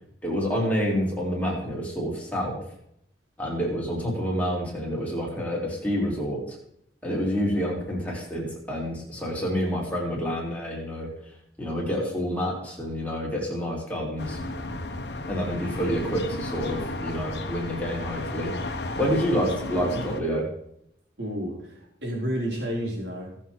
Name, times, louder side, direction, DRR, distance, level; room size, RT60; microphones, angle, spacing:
voice 1, 0.2-2.6 3.4-6.6 7.0-11.1 11.6-14.4 15.3-18.5 19.0-20.5, equal, 10° left, -4 dB, 4.1 m, -28 dB
sound 1, 14.2-20.2, left 2 dB, 75° left, 1.3 m, -33 dB
voice 2, 21.2-23.3, equal, 85° right, -3 dB, 4.8 m, -31 dB
18.5 x 7.4 x 4.7 m, 0.74 s
head